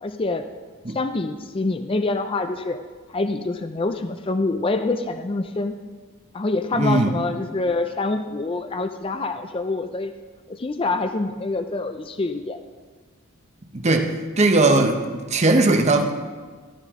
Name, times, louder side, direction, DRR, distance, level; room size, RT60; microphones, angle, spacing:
voice 1, 0.0-0.4 0.9-2.8 3.1-5.7 6.3-10.1 10.5-12.6, left 3 dB, 25° left, 8 dB, 0.4 m, -26 dB
voice 2, 6.8-7.2 13.7-16.1, right 2 dB, 30° right, 4 dB, 0.9 m, -19 dB
13.0 x 13.0 x 3.7 m, 1.5 s
head